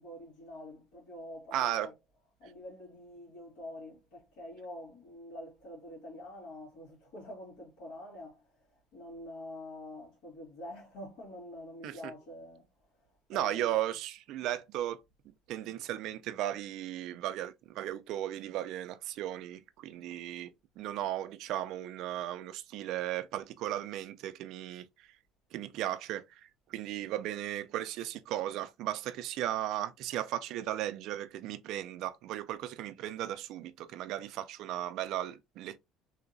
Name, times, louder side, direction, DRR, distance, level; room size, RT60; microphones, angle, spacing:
voice 1, 0.0-1.9 2.4-12.6 13.3-13.8, left 1 dB, 80° left, 2.0 m, -46 dB
voice 2, 1.5-1.9 11.8-12.0 13.3-15.0 15.5-20.5 20.8-25.2 25.5-35.8, right 13 dB, 65° right, 0.3 m, -36 dB
3.3 x 2.8 x 2.5 m
cardioid pair, 130°, 0 cm